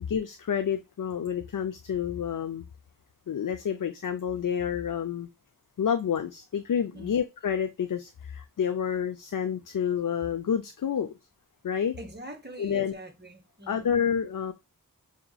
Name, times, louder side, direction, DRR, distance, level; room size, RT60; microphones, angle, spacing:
voice 1, 0.0-2.7 3.3-5.3 5.8-11.1 11.6-12.0 12.6-12.9 13.7-14.5, left 8 dB, 60° left, 0.5 m, -29 dB
voice 2, 12.0-13.9, right 1 dB, 30° right, 1.2 m, -43 dB
5.9 x 2.9 x 2.3 m
wide cardioid pair, 40°, 36 cm